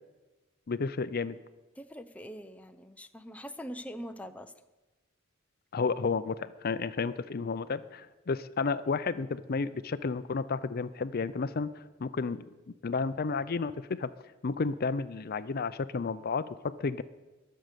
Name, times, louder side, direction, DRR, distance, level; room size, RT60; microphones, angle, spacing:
voice 1, 0.7-1.4 5.7-12.5 12.8-14.1 14.4-17.0, left 4 dB, 50° left, 14 dB, 0.5 m, -32 dB
voice 2, 1.8-4.5, equal, 5° left, 8 dB, 0.6 m, -43 dB
21.5 x 7.7 x 6.7 m, 1.2 s
head